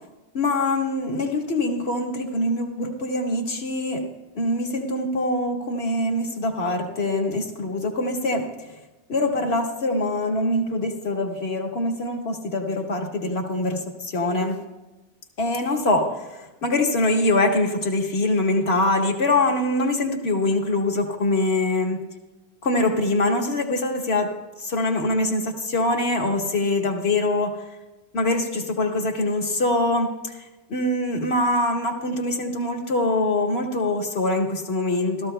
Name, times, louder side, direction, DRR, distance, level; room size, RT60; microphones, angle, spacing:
voice 1, 0.3-4.1 4.3-8.7 9.1-14.6 15.4-22.0 22.6-24.3 24.6-27.6 28.1-35.3, left 2 dB, 70° left, 2 dB, 1.6 m, -24 dB
15.5 x 13.5 x 2.2 m, 1.1 s
omnidirectional pair, 1.1 m